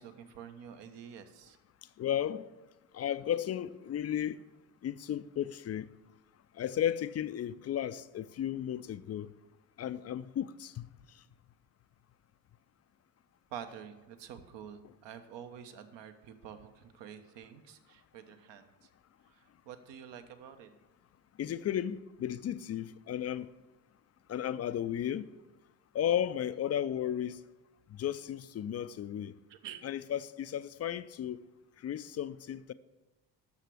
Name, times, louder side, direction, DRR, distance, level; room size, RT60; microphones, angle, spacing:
voice 1, 0.0-1.6 13.5-18.9 19.3-20.7 29.5-29.8, right 8 dB, 60° right, 1.1 m, -48 dB
voice 2, 2.0-2.5 2.9-4.4 4.8-5.9 6.5-9.3 9.8-11.2 21.4-23.5 24.3-25.3 25.9-27.4 27.9-29.4 29.8-31.4 31.8-32.7, left 10 dB, 35° left, 0.5 m, -34 dB
9.6 x 6.7 x 6.2 m
hypercardioid pair, 50°, 48 cm